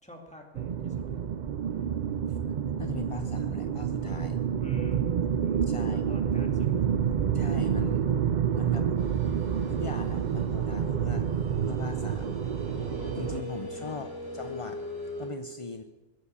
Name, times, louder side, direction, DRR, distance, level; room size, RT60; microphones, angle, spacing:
voice 1, 0.0-1.2 4.6-6.9 13.3-13.4 13.6-14.1, equal, 5° left, 1 dB, 2.1 m, -48 dB
sound 1, 0.5-13.4, right 8 dB, 55° right, 0.5 m, -28 dB
voice 2, 2.8-4.4 5.6-6.0 7.3-8.1 8.5-8.9 9.7-11.3 11.6-12.4 12.8-12.9 13.2-14.8 15.2-15.8, left 4 dB, 40° left, 7 dB, 0.4 m, -39 dB
sound 2, 9.0-15.3, left 1 dB, 65° left, 3.3 m, -42 dB
21.0 x 7.4 x 6.8 m, 1.3 s
omnidirectional pair, 1.3 m